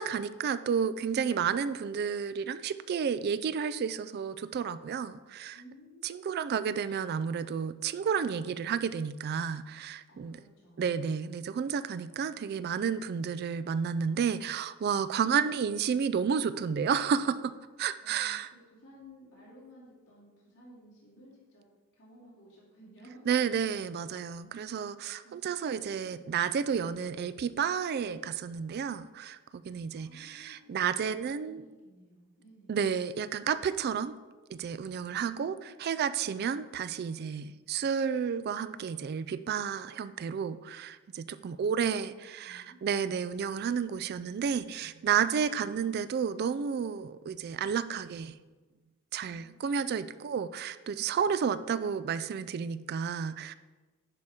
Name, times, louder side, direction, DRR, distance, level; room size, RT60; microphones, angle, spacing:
voice 1, 0.0-5.6 6.0-10.4 10.8-18.5 23.3-31.6 32.7-34.1 34.5-48.4 49.1-53.5, right 7 dB, 50° right, 14 dB, 0.3 m, -31 dB
voice 2, 5.5-6.6 10.1-11.0 18.0-21.7 21.9-23.3 25.2-26.2 29.9-32.8 35.2-36.3 41.4-43.0 49.3-50.2, equal, 60° left, -8 dB, 2.7 m, -56 dB
10.5 x 4.9 x 4.3 m, 1.3 s
head